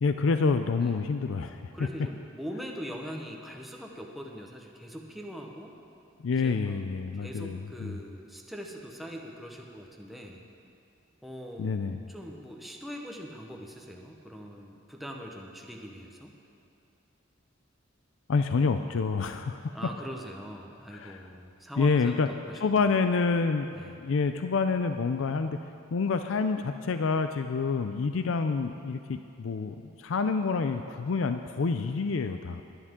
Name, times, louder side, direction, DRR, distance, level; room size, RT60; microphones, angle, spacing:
voice 1, 0.0-1.7 6.2-8.0 11.6-12.0 18.3-19.7 20.9-21.2 21.8-22.3 22.6-23.7 24.0-25.6 25.9-32.6, left 4 dB, 80° left, 8 dB, 0.5 m, -27 dB
voice 2, 1.7-5.7 6.3-6.8 7.1-10.4 11.2-11.8 12.1-16.3 19.7-22.9 23.7-23.9, equal, ahead, 0 dB, 1.0 m, -42 dB
20.5 x 10.0 x 3.7 m, 2.5 s
head